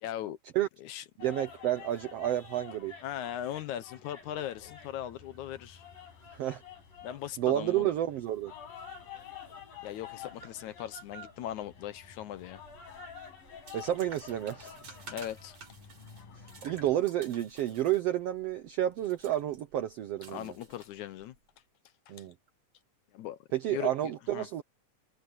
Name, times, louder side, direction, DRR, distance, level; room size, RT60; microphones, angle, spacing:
voice 1, 0.0-0.4 0.8-1.0 3.0-5.8 7.0-7.9 9.8-12.6 15.1-15.6 20.3-21.3 23.1-23.4 23.7-23.9 24.3-24.5, left 11 dB, 70° left, 2.1 m, -39 dB
sound 1, 1.2-17.0, left 7 dB, 90° left, 6.9 m, -49 dB
voice 2, 1.2-2.9 6.3-6.6 7.4-8.5 13.7-15.0 16.4-20.5 22.1-22.3 23.5-24.6, right 13 dB, 75° right, 1.4 m, -30 dB
sound 2, 12.5-21.4, right 4 dB, 45° right, 4.6 m, -53 dB
omnidirectional pair, 3.9 m